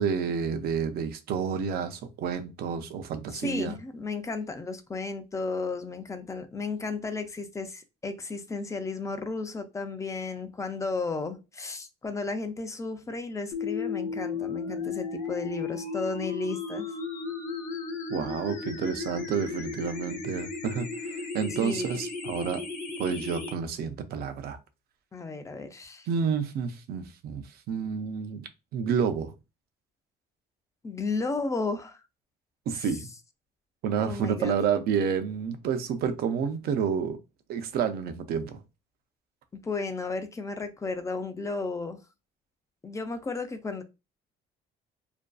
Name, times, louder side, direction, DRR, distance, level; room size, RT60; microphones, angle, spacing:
voice 1, 0.0-3.8 18.1-22.6 23.0-24.6 26.1-29.3 32.7-33.1 33.8-37.2 37.5-38.6, right 6 dB, 65° right, 0.5 m, -29 dB
voice 2, 3.3-16.9 21.6-22.0 25.1-26.1 30.8-32.0 32.7-32.9 34.0-34.6 39.5-42.0 42.8-43.8, left 3 dB, 20° left, 0.3 m, -33 dB
sound 1, 13.5-23.5, left 4 dB, 50° left, 0.9 m, -35 dB
2.5 x 2.3 x 2.2 m
cardioid pair, 110°, 17 cm